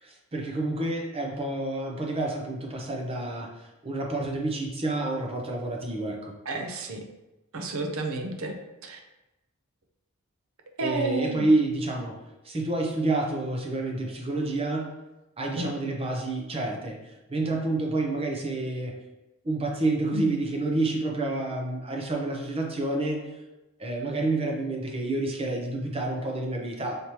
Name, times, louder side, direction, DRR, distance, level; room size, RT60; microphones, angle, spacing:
voice 1, 0.0-6.3 10.8-12.2 12.4-14.9 15.4-17.0 17.3-18.9 19.4-23.2 23.8-27.0, right 2 dB, 25° right, 0 dB, 0.7 m, -29 dB
voice 2, 6.5-7.0 7.5-8.5 8.8-9.0 10.8-11.5 15.6-15.7 20.1-20.3, right 2 dB, 70° right, 3 dB, 0.6 m, -30 dB
5.1 x 2.9 x 2.9 m, 0.99 s
head